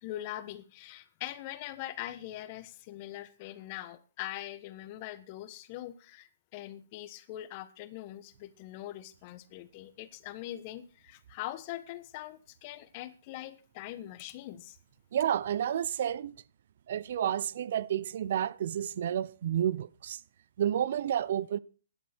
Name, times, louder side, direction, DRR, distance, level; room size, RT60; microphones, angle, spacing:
voice 1, 0.0-14.8, left 14 dB, 35° left, 1.3 m, -42 dB
voice 2, 15.1-16.3 16.9-20.2 20.6-21.6, right 10 dB, 60° right, 0.6 m, -30 dB
17.5 x 11.5 x 4.5 m
hypercardioid pair, 145°, 0 cm